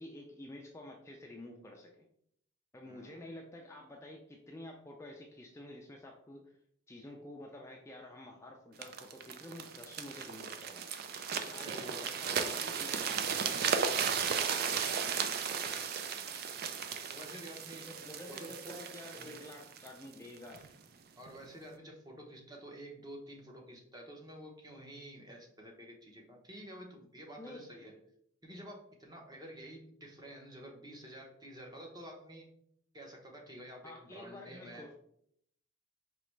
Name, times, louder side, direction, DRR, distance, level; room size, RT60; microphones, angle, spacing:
voice 1, 0.0-1.9 2.7-6.5 6.9-10.9 11.3-14.9 17.9-20.7 27.4-27.7 33.8-34.9, left 1 dB, 15° left, 0 dB, 0.4 m, -50 dB
voice 2, 2.8-3.3 11.6-12.6 15.3-15.9 16.1-16.5 17.1-17.9 18.3-18.8 19.1-19.3 21.2-28.0 28.4-32.5 32.9-34.9, equal, 20° right, 0 dB, 0.8 m, -50 dB
sound 1, 8.8-20.7 21.3-21.4, right 6 dB, 50° right, 0.4 m, -35 dB
4.9 x 3.0 x 3.2 m, 0.70 s
head